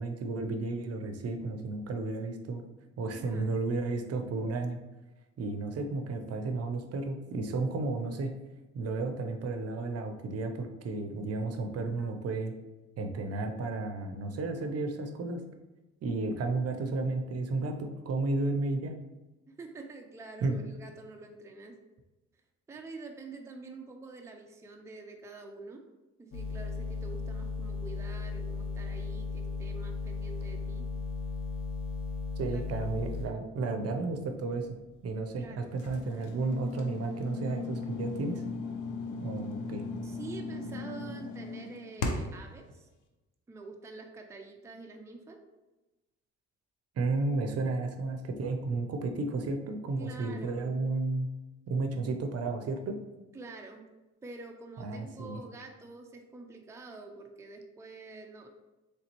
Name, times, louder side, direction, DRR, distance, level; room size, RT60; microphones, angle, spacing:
voice 1, 0.0-2.6 3.0-4.8 5.4-8.3 8.7-12.5 13.0-15.4 16.0-18.9 20.4-20.6 32.4-34.8 35.0-38.4 39.2-39.8 47.0-51.3 51.7-53.0 54.8-55.4, right 3 dB, 55° right, 6 dB, 0.6 m, -33 dB
voice 2, 3.1-3.7 19.5-21.8 22.7-25.8 26.2-30.9 32.5-33.3 35.4-35.7 40.0-42.9 43.5-45.4 50.0-50.7 53.3-53.8 54.2-58.5, right 3 dB, 10° right, 3 dB, 0.4 m, -47 dB
sound 1, 26.3-33.3, left 3 dB, 45° left, 0.7 m, -36 dB
sound 2, 35.8-42.5, left 3 dB, 80° left, 0.7 m, -37 dB
4.0 x 3.3 x 3.0 m, 1.1 s
cardioid pair, 90°, 30 cm